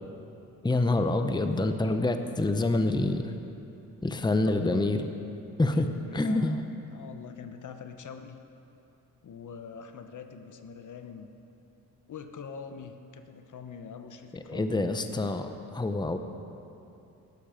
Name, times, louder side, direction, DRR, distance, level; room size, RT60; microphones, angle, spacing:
voice 1, 0.6-3.3 4.0-5.1 5.6-5.9 6.1-6.6 14.3-16.2, left 2 dB, 10° left, 7 dB, 0.8 m, -27 dB
voice 2, 1.2-1.5 4.4-4.9 5.7-6.6 6.9-8.4 9.2-11.3 12.1-14.8, left 6 dB, 55° left, 7 dB, 1.0 m, -44 dB
15.0 x 12.0 x 5.1 m, 2.8 s
cardioid pair, 70°, 36 cm